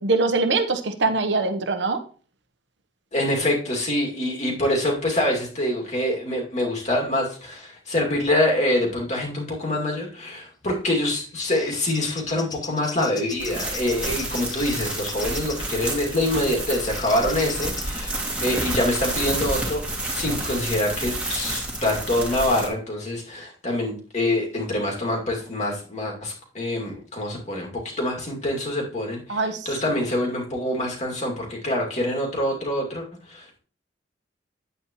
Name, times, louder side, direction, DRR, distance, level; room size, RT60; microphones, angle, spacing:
voice 1, 0.0-2.0 29.3-29.7, right 3 dB, 75° right, 8 dB, 1.0 m, -23 dB
voice 2, 3.1-19.8 20.1-33.6, left 1 dB, 40° left, -1 dB, 2.4 m, -25 dB
Bird vocalization bird call bird song, 11.0-15.7 16.7-17.9, left 5 dB, 20° left, 0.8 m, -38 dB
sound 1, 13.4-22.7, right 1 dB, 5° right, 2.0 m, -30 dB
9.7 x 8.3 x 3.0 m, 0.40 s
head